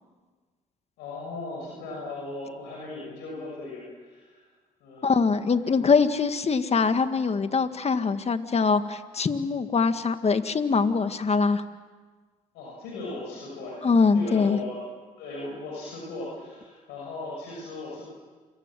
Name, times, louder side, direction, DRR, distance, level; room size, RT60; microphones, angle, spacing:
voice 1, 1.0-4.4 4.8-5.1 12.5-13.8 14.1-14.8 15.2-18.0, left 2 dB, 85° left, -2 dB, 6.5 m, -37 dB
voice 2, 5.0-11.6 13.8-14.6, left 5 dB, 40° left, 9 dB, 1.8 m, -23 dB
28.5 x 23.5 x 7.7 m, 1.4 s
supercardioid pair, 60°, 17 cm